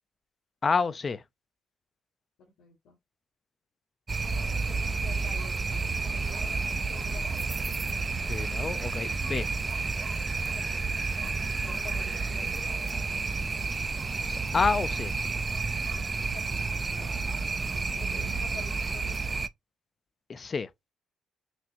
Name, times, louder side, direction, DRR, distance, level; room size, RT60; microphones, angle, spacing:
voice 1, 0.6-1.2 8.3-9.5 14.3-15.1 18.1-18.3 20.3-20.7, left 5 dB, 40° left, 0.4 m, -29 dB
voice 2, 2.4-3.0 4.2-7.5 10.5-12.7 16.3-17.4 17.9-19.4, left 5 dB, 80° left, 2.2 m, -49 dB
sound 1, 4.1-19.5, right 4 dB, 30° right, 0.3 m, -30 dB
5.8 x 2.0 x 2.8 m
cardioid pair, 90°, 0 cm